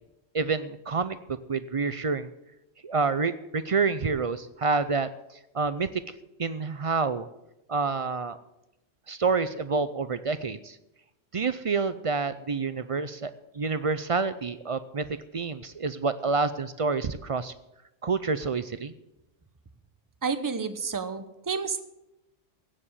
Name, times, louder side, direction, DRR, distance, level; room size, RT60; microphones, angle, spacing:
voice 1, 0.3-2.3 2.8-5.1 5.5-5.9 6.4-7.3 7.7-8.4 9.1-10.8 11.3-17.5 18.0-18.9, right 4 dB, 45° right, 14 dB, 0.4 m, -28 dB
voice 2, 20.2-21.8, right 5 dB, 20° right, 10 dB, 0.8 m, -30 dB
16.5 x 7.5 x 7.3 m, 0.92 s
omnidirectional pair, 1.3 m